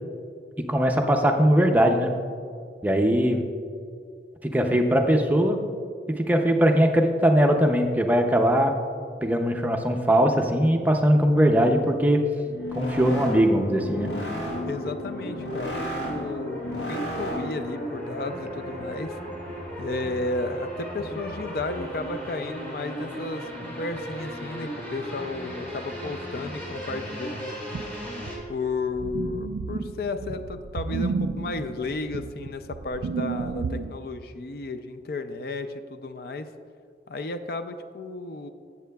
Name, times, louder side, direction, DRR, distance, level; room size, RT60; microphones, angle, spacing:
voice 1, 0.6-2.1 2.8-3.5 4.4-5.6 6.2-8.7 9.2-12.2 12.7-14.1, equal, 10° right, 3 dB, 0.5 m, -20 dB
sound 1, 12.4-17.7, left 1 dB, 75° left, 1.6 m, -34 dB
sound 2, 13.1-28.4, equal, 10° left, 2.4 m, -36 dB
voice 2, 14.7-19.2 19.8-27.5 28.5-36.5 37.1-38.5, left 3 dB, 55° left, 8 dB, 0.4 m, -33 dB
sound 3, 27.7-33.9, right 4 dB, 75° right, 0.3 m, -31 dB
13.5 x 8.4 x 2.3 m, 2.2 s
head